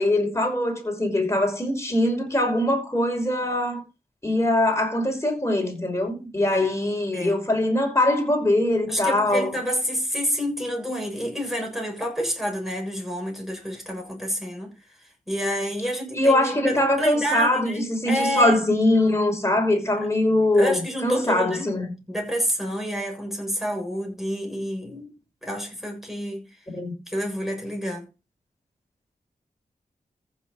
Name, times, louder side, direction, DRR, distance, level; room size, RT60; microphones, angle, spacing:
voice 1, 0.0-3.8 4.2-9.5 16.1-21.9 26.7-26.9, left 1 dB, 20° left, 5.5 m, -22 dB
voice 2, 8.9-14.9 15.3-18.6 20.6-21.7 22.1-25.1 25.4-26.4 27.1-28.1, equal, ahead, 6.9 m, -28 dB
15.0 x 7.1 x 4.1 m
wide cardioid pair, 95°, 16 cm